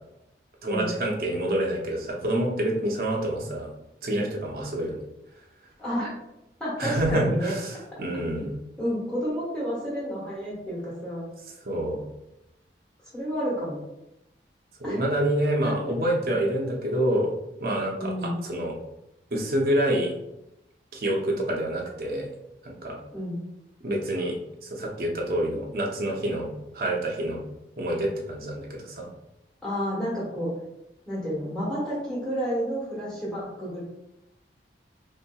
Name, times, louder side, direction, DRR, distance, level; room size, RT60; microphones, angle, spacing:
voice 1, 0.6-3.7 4.0-5.0 6.8-8.5 11.7-12.0 14.8-17.3 17.6-18.1 18.4-18.7 19.3-20.1 20.9-22.3 22.6-23.0 23.8-26.5 26.7-27.4 27.8-29.1, right 1 dB, 55° right, -1 dB, 0.7 m, -27 dB
voice 2, 5.8-6.1 6.6-7.5 8.8-11.3 13.1-13.8 14.8-15.0 15.6-15.7 18.0-18.4 23.1-23.4 29.6-30.5 31.1-33.8, equal, 5° left, -8 dB, 1.3 m, -30 dB
3.8 x 2.8 x 2.3 m, 0.90 s
head